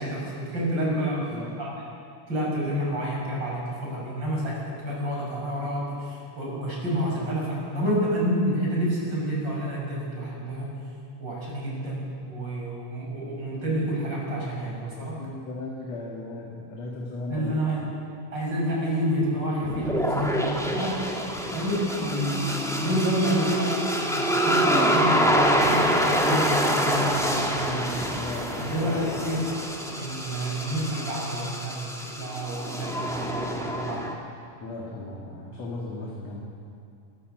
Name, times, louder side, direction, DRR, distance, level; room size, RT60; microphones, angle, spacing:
voice 1, 0.0-1.3 1.6-1.7 2.3-6.1 6.4-10.7 11.2-15.2 17.3-17.9 18.3-21.1 21.5-28.0 28.6-29.5 30.0-34.0, equal, 30° right, -4 dB, 6.6 m, -29 dB
voice 2, 1.0-1.6 15.2-17.7 27.7-28.9 34.6-36.4, left 2 dB, 55° left, -2 dB, 3.0 m, -36 dB
sound 1, 19.6-34.1, equal, 5° left, 0.6 m, -26 dB
26.0 x 13.0 x 7.8 m, 2.5 s
omnidirectional pair, 3.7 m